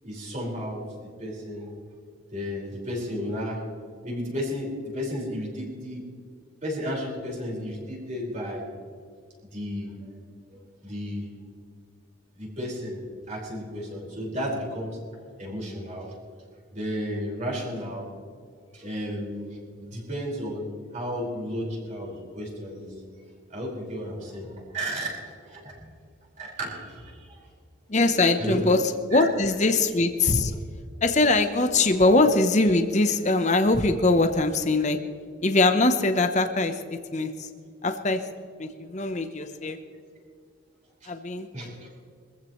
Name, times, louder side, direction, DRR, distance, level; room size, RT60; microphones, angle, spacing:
voice 1, 0.0-0.8 1.2-1.7 2.3-3.6 4.0-6.0 6.6-8.7 9.5-9.9 10.8-11.3 12.4-13.0 13.3-15.0 15.4-16.1 16.7-18.1 18.7-19.5 19.8-20.6 20.9-22.9 23.5-25.1 25.5-25.7 26.4-27.1 28.4-28.6 29.1-29.3 41.5-41.7, equal, 35° right, -4 dB, 5.0 m, -33 dB
voice 2, 27.9-28.8 29.1-30.6 31.0-35.0 35.4-36.8 37.1-37.5 37.8-38.2 38.6-39.8 41.1-41.5, left 2 dB, 35° left, 7 dB, 0.9 m, -22 dB
23.5 x 15.0 x 3.2 m, 2.1 s
head